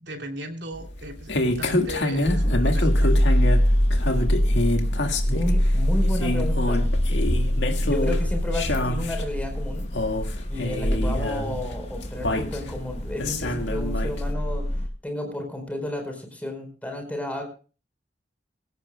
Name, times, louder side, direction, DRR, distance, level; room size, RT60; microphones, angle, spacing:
voice 1, 0.0-3.2, right 1 dB, 70° right, 3 dB, 3.2 m, -37 dB
sound 1, 0.7-14.3, left 1 dB, 80° left, 1.9 m, -28 dB
sound 2, 2.3-14.9, equal, 35° left, 1.6 m, -24 dB
voice 2, 5.2-6.8 7.8-9.8 10.5-14.7 15.0-17.4, left 1 dB, 10° left, 4 dB, 4.7 m, -32 dB
23.0 x 16.5 x 2.3 m, 0.35 s
head